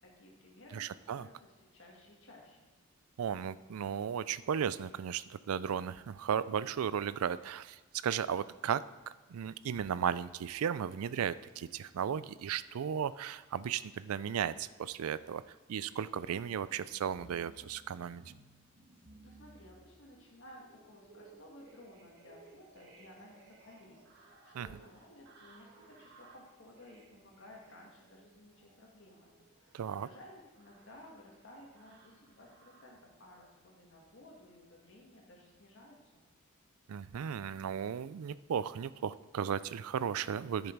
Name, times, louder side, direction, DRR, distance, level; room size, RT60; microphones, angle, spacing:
voice 1, 0.0-1.3 1.6-2.6 18.9-36.3, left 1 dB, 60° left, -2 dB, 2.0 m, -56 dB
voice 2, 0.7-1.3 3.2-8.8 9.3-15.4 15.7-18.2 24.5-24.7 29.7-30.1 36.9-40.7, right 8 dB, 85° right, 17 dB, 0.4 m, -35 dB
sound 1, 17.1-33.0 33.7-34.3 34.8-34.9, right 3 dB, 50° right, 1.9 m, -60 dB
10.5 x 6.7 x 4.6 m, 1.3 s
head